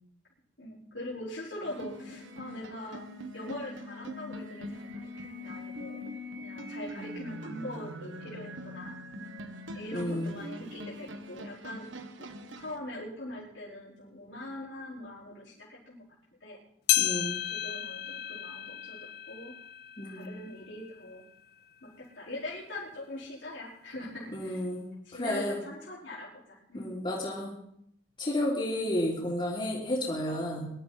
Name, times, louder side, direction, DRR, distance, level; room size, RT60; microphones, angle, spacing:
voice 1, 0.6-3.0 3.3-8.9 9.7-11.9 12.2-12.3 12.6-16.1 16.4-16.6 17.4-19.5 20.0-21.2 21.8-21.9 22.1-24.6 25.0-26.9 28.7-28.9 30.3-30.4, left 1 dB, 75° left, -7 dB, 4.8 m, -42 dB
sound 1, 1.6-12.8, equal, 90° right, 1.6 m, -42 dB
voice 2, 9.9-10.4 17.0-17.4 20.0-20.4 24.3-25.6 26.7-27.6 28.2-30.7, left 1 dB, 30° left, -6 dB, 3.4 m, -32 dB
sound 2, 16.9-21.5 22.0-22.1 22.9-23.0 24.0-24.1, left 14 dB, 55° left, 0.6 m, -33 dB
21.5 x 12.5 x 4.3 m, 0.74 s
head